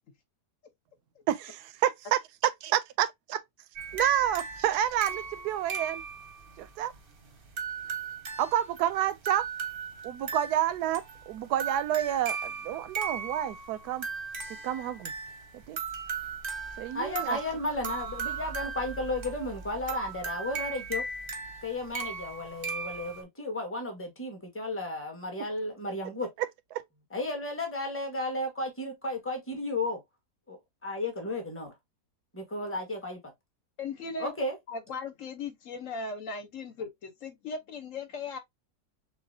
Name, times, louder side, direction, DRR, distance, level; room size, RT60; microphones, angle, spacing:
voice 1, 1.3-3.4 3.9-5.1 5.4-6.0 6.6-6.9 8.4-9.5 10.0-14.1 14.6-15.1 15.5-15.8 16.8-17.4, right 12 dB, 75° right, 1.0 m, -29 dB
sound 1, 3.8-23.2, right 5 dB, 45° right, 0.8 m, -37 dB
voice 2, 16.9-21.1 21.6-26.3 27.1-30.0 30.5-31.7 32.3-33.3 34.2-34.5, left 2 dB, 10° left, 1.1 m, -34 dB
voice 3, 33.8-34.3 34.7-38.4, left 4 dB, 55° left, 1.1 m, -38 dB
6.5 x 2.4 x 2.7 m
omnidirectional pair, 1.8 m